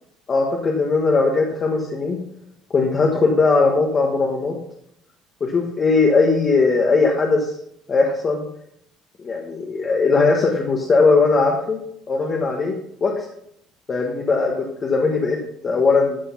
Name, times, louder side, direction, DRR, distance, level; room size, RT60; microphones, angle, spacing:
voice 1, 0.3-2.2 2.7-4.5 5.4-7.5 7.9-8.4 9.2-11.8 12.1-12.7 13.0-13.3 13.9-14.5 14.8-15.4 15.6-16.2, left 4 dB, 25° left, 0 dB, 1.2 m, -19 dB
13.0 x 6.2 x 5.9 m, 0.75 s
cardioid pair, 175°, 0 cm